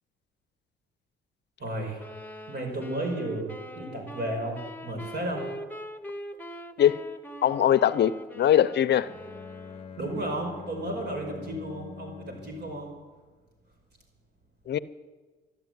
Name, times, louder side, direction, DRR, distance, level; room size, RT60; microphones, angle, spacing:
voice 1, 1.6-2.0 2.5-5.5 10.0-12.9, right 1 dB, 55° right, 1 dB, 5.7 m, -33 dB
sound 1, 2.0-10.0, equal, 10° left, 1.1 m, -43 dB
voice 2, 7.4-9.1 14.7-14.8, left 10 dB, 60° left, 17 dB, 0.6 m, -22 dB
Bowed string instrument, 8.9-13.0, left 6 dB, 30° left, 0.8 m, -44 dB
13.0 x 11.5 x 9.4 m, 1.3 s
cardioid pair, 90°, 20 cm